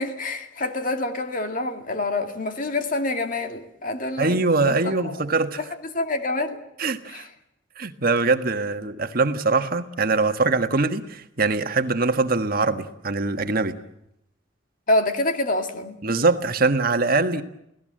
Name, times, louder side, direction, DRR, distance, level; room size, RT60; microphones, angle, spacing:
voice 1, 0.0-5.2 5.9-6.6 7.1-7.3 14.9-16.0, left 2 dB, 45° left, 6 dB, 2.2 m, -26 dB
voice 2, 4.2-5.6 6.8-7.2 7.8-13.7 16.0-17.4, right 3 dB, 50° right, 8 dB, 1.5 m, -22 dB
29.5 x 17.5 x 7.6 m, 0.81 s
head